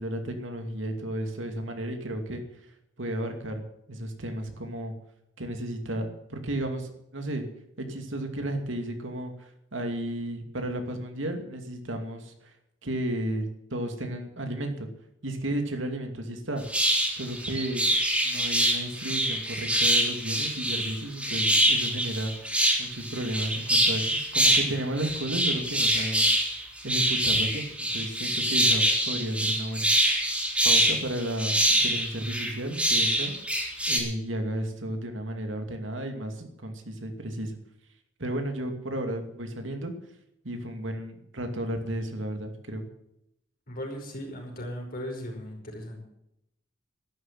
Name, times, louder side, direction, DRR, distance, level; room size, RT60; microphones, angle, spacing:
voice 1, 0.0-2.4 3.0-3.6 3.9-4.9 5.4-7.5 7.8-12.5 12.8-14.9 15.2-16.6 17.1-17.9 18.2-22.3 22.8-30.2 30.6-33.4 33.9-37.5 38.2-39.9 40.4-42.9, right 1 dB, 70° right, 5 dB, 2.6 m, -33 dB
sound 1, 16.7-34.0, right 1 dB, 5° right, 4.2 m, -25 dB
voice 2, 43.7-46.0, equal, 50° left, 1 dB, 5.2 m, -37 dB
12.5 x 11.5 x 7.6 m, 0.80 s
head